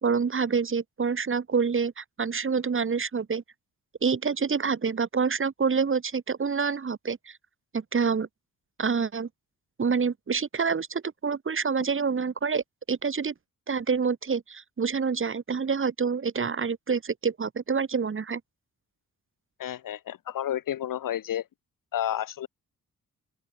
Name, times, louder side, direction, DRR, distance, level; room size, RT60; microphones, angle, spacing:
voice 1, 0.0-3.4 4.0-7.4 7.7-8.3 8.8-9.3 9.8-13.3 13.7-18.4, right 5 dB, 40° right, 2.4 m, -27 dB
voice 2, 19.6-21.4 21.9-22.5, left 11 dB, 90° left, 3.3 m, -31 dB
open air
cardioid pair, 100°, 32 cm